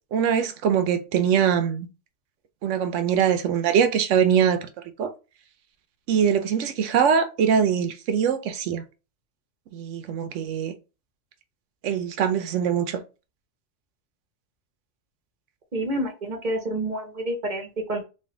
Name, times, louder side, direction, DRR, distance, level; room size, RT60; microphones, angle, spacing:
voice 1, 0.1-1.9 2.6-4.6 5.0-5.1 6.1-8.8 9.7-10.7 11.8-13.0, right 7 dB, 70° right, 0.9 m, -22 dB
voice 2, 15.7-18.0, right 1 dB, 45° right, 0.7 m, -28 dB
3.3 x 2.5 x 3.6 m
omnidirectional pair, 1.3 m